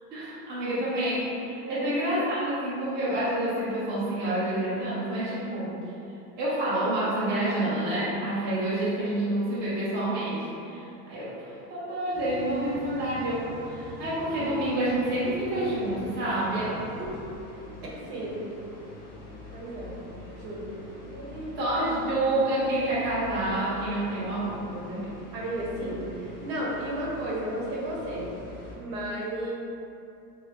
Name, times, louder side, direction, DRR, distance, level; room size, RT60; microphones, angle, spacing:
voice 1, 0.1-5.7 6.4-17.2 21.6-25.1, right 1 dB, 20° right, -10 dB, 0.8 m, -28 dB
sound 1, 12.1-28.7, left 1 dB, 20° left, 0.5 m, -44 dB
voice 2, 18.1-18.4 19.5-20.0 20.3-20.7 21.0-21.6 25.3-28.3 28.8-29.5, right 1 dB, 70° right, -5 dB, 1.0 m, -33 dB
2.7 x 2.6 x 3.1 m, 2.7 s
supercardioid pair, 145°, 49 cm